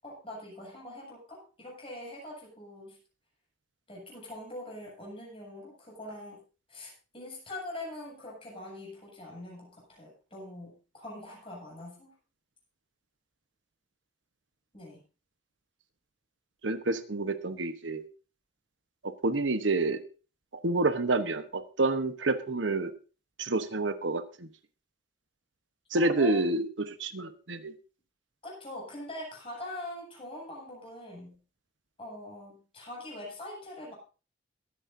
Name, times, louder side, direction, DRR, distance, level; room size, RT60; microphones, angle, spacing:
voice 1, 0.0-3.0 3.9-6.4 6.7-12.1 14.7-15.0 25.9-26.4 28.4-31.4 32.0-34.0, left 1 dB, 30° left, -3 dB, 7.8 m, -43 dB
voice 2, 16.6-18.1 19.0-20.0 20.5-22.9 23.4-24.5 25.9-27.7, right 2 dB, 75° right, 10 dB, 1.1 m, -28 dB
22.5 x 9.8 x 2.7 m, 0.35 s
head